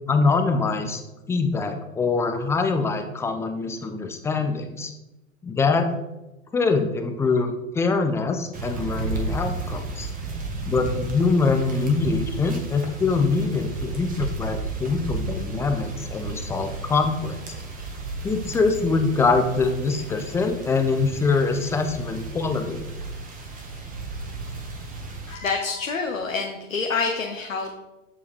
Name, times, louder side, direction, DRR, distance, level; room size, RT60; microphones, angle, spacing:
voice 1, 0.1-1.0 1.3-4.9 5.4-5.9 6.5-10.1 10.6-17.4 18.2-22.9, left 4 dB, 5° left, 6 dB, 0.3 m, -24 dB
sound 1, 8.5-25.3, right 3 dB, 20° right, 1.4 m, -33 dB
voice 2, 25.3-27.7, left 4 dB, 85° left, 2 dB, 0.9 m, -27 dB
7.5 x 6.9 x 3.3 m, 0.97 s
figure-of-eight pair, 100°, 39 cm